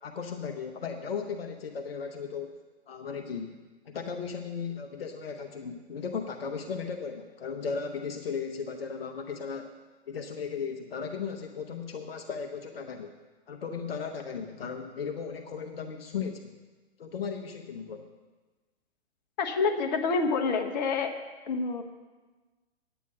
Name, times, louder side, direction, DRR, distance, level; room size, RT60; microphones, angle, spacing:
voice 1, 0.0-2.5 2.9-3.6 3.9-9.7 10.1-13.2 13.5-16.5 17.0-18.1, left 6 dB, 65° left, 5 dB, 1.0 m, -36 dB
voice 2, 19.4-21.1 21.5-21.8, left 4 dB, 40° left, 6 dB, 1.2 m, -27 dB
9.5 x 9.2 x 6.2 m, 1.3 s
figure-of-eight pair, 120°, 32 cm